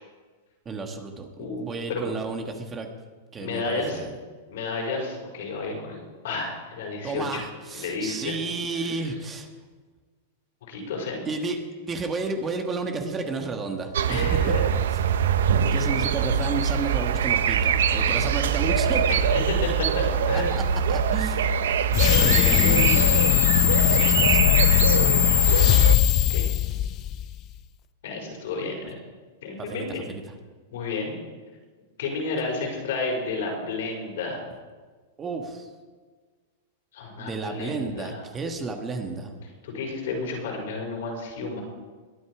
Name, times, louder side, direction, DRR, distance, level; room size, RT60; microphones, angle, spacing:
voice 1, 0.6-2.9 3.3-4.1 7.0-9.5 11.3-14.5 14.8-15.3 15.7-19.0 20.3-21.5 22.2-23.0 23.9-24.5 25.0-25.2 29.6-30.2 35.2-35.7 37.2-39.3, right 4 dB, 20° right, 4 dB, 1.5 m, -32 dB
voice 2, 1.4-2.1 3.4-4.0 4.5-7.4 7.7-8.3 10.7-11.3 14.1-14.7 19.1-19.2 19.6-20.5 26.3-26.4 28.0-29.0 29.4-30.1 30.7-31.1 32.0-34.4 36.9-38.2 39.6-41.6, left 3 dB, 75° left, 0 dB, 5.5 m, -31 dB
sound 1, 13.9-26.0, right 7 dB, 85° right, 0.7 m, -23 dB
sound 2, 21.9-27.3, left 13 dB, 35° left, 0.5 m, -19 dB
21.5 x 9.5 x 4.9 m, 1.4 s
supercardioid pair, 145°, 0 cm